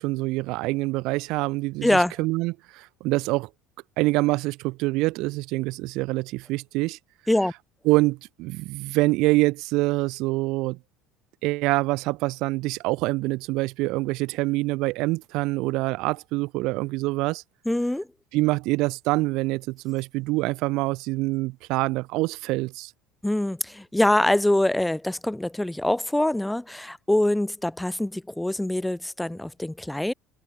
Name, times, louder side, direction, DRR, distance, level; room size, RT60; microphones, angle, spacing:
voice 1, 0.0-3.5 4.0-7.0 7.9-10.8 11.4-17.4 18.3-22.9, right 21 dB, 70° right, 0.5 m, -25 dB
voice 2, 1.8-2.1 7.3-7.5 17.7-18.1 23.2-30.1, left 1 dB, 5° left, 0.7 m, -24 dB
supercardioid pair, 90°, 0 cm